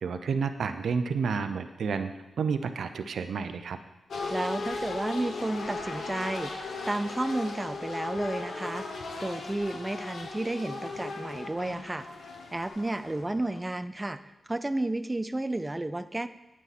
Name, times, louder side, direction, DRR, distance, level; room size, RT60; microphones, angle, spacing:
voice 1, 0.0-3.8, right 5 dB, 80° right, 9 dB, 0.6 m, -30 dB
sound 1, 4.1-13.6, left 3 dB, 85° left, 1.2 m, -37 dB
voice 2, 4.3-8.9 9.2-12.1 12.5-14.2 14.5-16.3, right 2 dB, 15° right, 11 dB, 0.4 m, -32 dB
9.2 x 8.6 x 4.2 m, 0.99 s
cardioid pair, 85°, 0 cm